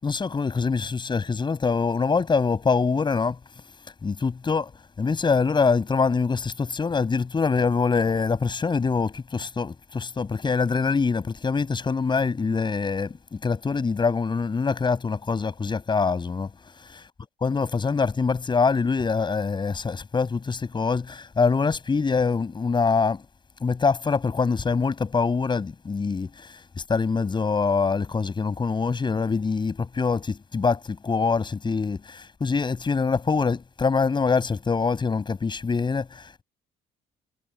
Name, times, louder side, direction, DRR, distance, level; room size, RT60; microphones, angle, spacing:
voice 1, 0.0-3.4 4.0-4.7 5.0-16.5 17.4-23.2 23.6-26.5 26.9-36.4, left 4 dB, 25° left, 7.7 m, -24 dB
cardioid pair, 110°, 17 cm